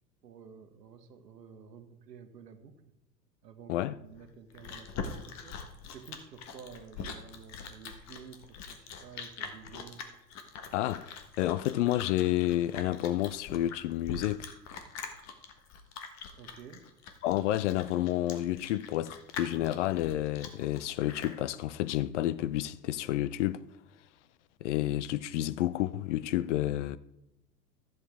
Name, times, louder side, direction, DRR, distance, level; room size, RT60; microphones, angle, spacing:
voice 1, 0.2-2.8 3.4-5.6 5.9-10.0 16.4-16.9, right 6 dB, 75° right, 1.3 m, -51 dB
Chewing mastication, 4.2-21.4, left 6 dB, 35° left, 1.3 m, -43 dB
voice 2, 10.7-14.5 17.2-23.6 24.6-27.0, left 14 dB, 50° left, 0.5 m, -30 dB
14.0 x 7.5 x 3.5 m
hypercardioid pair, 100°, 50 cm